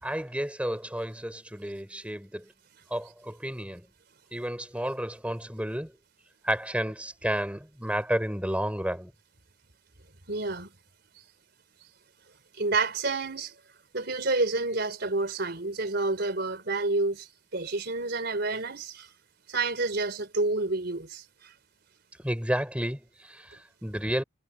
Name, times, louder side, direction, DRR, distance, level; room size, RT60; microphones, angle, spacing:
voice 1, 0.0-2.5 2.9-3.8 4.3-5.9 6.4-9.1 22.2-24.2, equal, 5° right, 5.0 m, -31 dB
voice 2, 10.3-10.7 12.6-13.5 13.9-19.1 19.5-21.5, right 3 dB, 55° right, 4.2 m, -29 dB
head